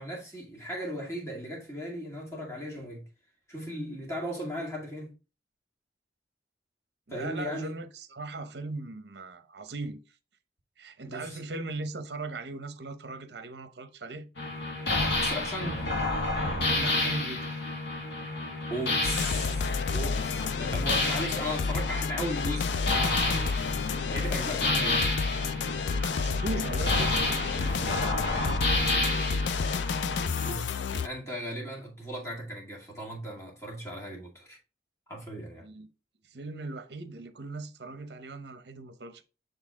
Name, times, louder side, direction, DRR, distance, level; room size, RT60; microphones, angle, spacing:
voice 1, 0.0-3.1 3.5-5.1 7.1-7.7 11.0-11.4 15.2-16.1 18.7-23.6 24.0-25.1 30.4-34.6 35.1-35.7, equal, 15° left, 2.2 m, -37 dB
voice 2, 7.1-10.0 10.8-14.3 16.7-17.6 26.0-27.4 35.6-35.9 36.3-39.2, right 2 dB, 70° right, 0.8 m, -39 dB
sound 1, 14.4-30.5, left 2 dB, 70° left, 1.7 m, -30 dB
sound 2, 19.0-31.1, left 5 dB, 90° left, 0.4 m, -30 dB
6.8 x 4.0 x 3.6 m
head